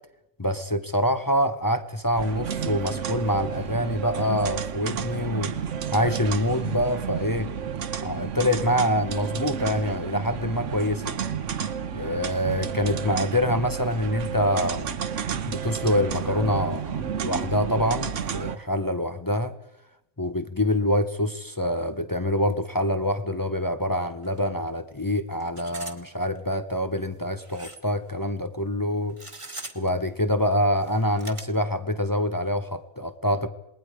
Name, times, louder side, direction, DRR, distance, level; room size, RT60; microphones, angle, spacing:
voice 1, 0.4-5.5 5.9-7.5 8.0-11.2 11.9-14.9 15.5-19.5 20.2-29.2 29.7-33.5, left 1 dB, 25° left, 9 dB, 0.5 m, -25 dB
sound 1, 2.2-18.6, right 7 dB, 55° right, 1.2 m, -31 dB
sound 2, 24.2-24.4 24.7-24.8 25.4-26.0 26.3-26.4 27.4-27.9 29.1-29.9 30.8-31.4, right 2 dB, 20° right, 1.4 m, -40 dB
27.5 x 20.5 x 4.9 m, 0.89 s
omnidirectional pair, 1.6 m